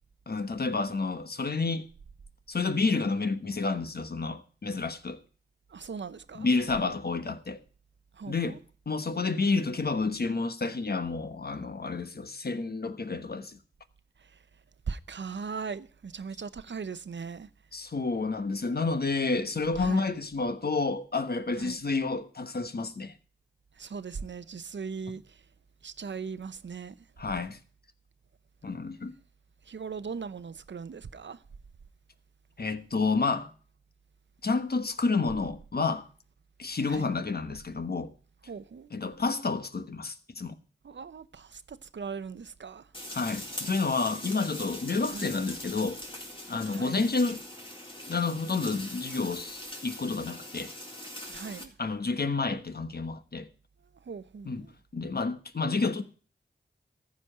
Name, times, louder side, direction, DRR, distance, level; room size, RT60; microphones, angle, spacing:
voice 1, 0.3-1.9 2.5-5.2 6.3-7.6 8.3-8.6 8.9-13.6 17.7-23.1 27.2-27.6 28.6-29.1 32.6-33.5 34.4-36.1 36.6-38.1 38.9-40.6 43.1-46.0 46.5-47.4 48.1-50.7 51.8-53.5 54.4-54.7 54.9-56.0, left 4 dB, 55° left, 1.2 m, -30 dB
voice 2, 5.7-6.5 8.1-8.6 14.2-14.5 14.9-17.5 19.7-20.1 21.5-21.8 23.7-25.5 25.8-27.1 29.6-31.4 36.9-37.2 38.5-38.9 40.8-42.9 45.1-45.3 46.7-47.0 51.3-51.8 53.9-54.7, right 5 dB, 75° right, 0.7 m, -39 dB
sound 1, 42.9-51.6, left 1 dB, 30° left, 4.0 m, -42 dB
14.0 x 5.2 x 8.7 m
cardioid pair, 45°, 19 cm